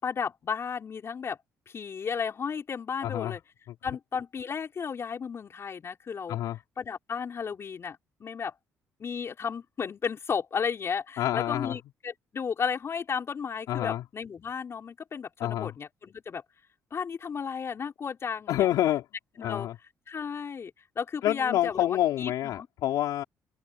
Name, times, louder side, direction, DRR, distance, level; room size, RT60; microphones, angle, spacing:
voice 1, 0.0-1.4 1.7-3.4 3.8-6.4 6.8-8.5 9.0-16.4 16.9-18.7 19.4-19.7 20.1-22.7, left 6 dB, 45° left, 5.0 m, -34 dB
voice 2, 3.0-3.4 6.3-6.6 11.2-11.8 13.7-14.0 15.4-15.7 18.5-19.0 19.4-19.8 21.2-23.2, left 13 dB, 75° left, 5.3 m, -27 dB
open air
cardioid pair, 85°, 6 cm